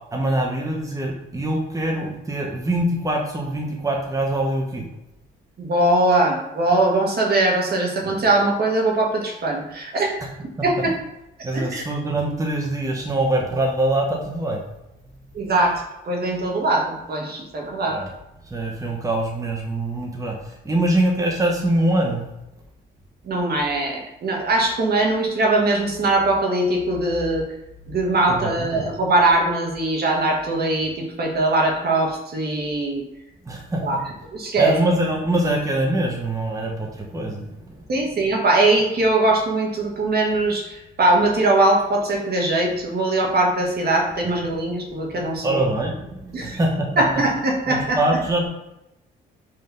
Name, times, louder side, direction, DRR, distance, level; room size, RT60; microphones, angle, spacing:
voice 1, 0.1-4.9 11.4-14.6 17.9-18.1 18.5-22.2 28.2-28.9 33.4-33.8 34.5-37.8 45.4-47.0 47.7-48.5, right 1 dB, 15° right, 0 dB, 1.3 m, -23 dB
voice 2, 5.6-10.2 10.6-10.9 11.5-11.8 15.3-18.0 23.3-27.5 27.9-33.0 33.8-34.0 34.3-34.7 37.9-45.6 46.3-46.6 47.0-48.0, right 2 dB, 50° right, 0 dB, 1.7 m, -21 dB
5.6 x 3.6 x 5.4 m, 0.89 s
cardioid pair, 90°, 20 cm